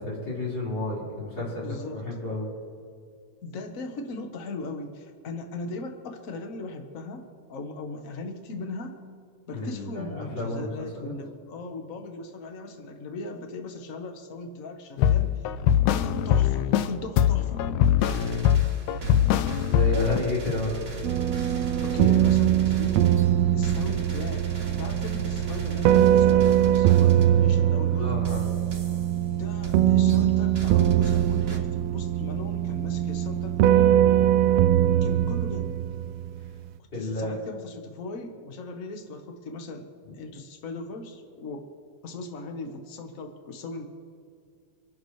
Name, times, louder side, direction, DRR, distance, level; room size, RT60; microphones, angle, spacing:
voice 1, 0.0-2.5 9.5-10.7 11.0-11.1 19.7-20.8 28.0-28.4 36.9-37.4, left 1 dB, 35° left, -7 dB, 5.3 m, -31 dB
voice 2, 1.4-2.3 3.4-9.0 9.5-15.5 15.8-17.6 21.8-23.3 23.5-28.1 29.3-34.0 35.0-35.8 37.0-39.9 40.1-41.7 42.0-43.9, left 3 dB, 70° left, 4 dB, 0.7 m, -38 dB
sound 1, 15.0-16.9 17.2-20.2, left 10 dB, 90° left, 2.0 m, -22 dB
sound 2, 18.0-27.5 28.2-29.2 29.6-29.8 30.1-31.6, right 4 dB, 30° right, 1.1 m, -38 dB
sound 3, 21.0-36.5, right 11 dB, 80° right, 1.6 m, -22 dB
26.5 x 11.5 x 3.2 m, 2.2 s
omnidirectional pair, 3.3 m